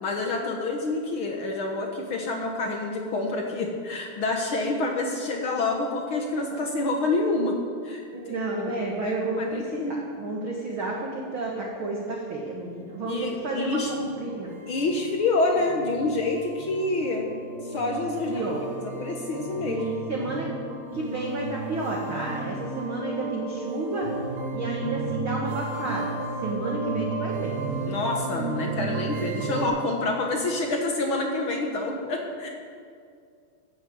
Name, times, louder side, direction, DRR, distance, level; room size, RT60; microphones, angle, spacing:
voice 1, 0.0-7.6 7.8-8.4 8.7-8.8 9.0-10.1 13.0-13.9 14.7-17.3 17.7-18.4 18.8-19.8 27.8-32.5, left 2 dB, 70° left, 1 dB, 1.2 m, -27 dB
voice 2, 8.1-14.5 18.2-18.6 19.7-20.5 20.9-24.1 24.5-27.5, right 2 dB, 50° right, -1 dB, 1.6 m, -31 dB
sound 1, 12.7-29.7, right 3 dB, 75° right, 3.7 m, -34 dB
14.0 x 8.9 x 8.0 m, 2.3 s
omnidirectional pair, 4.2 m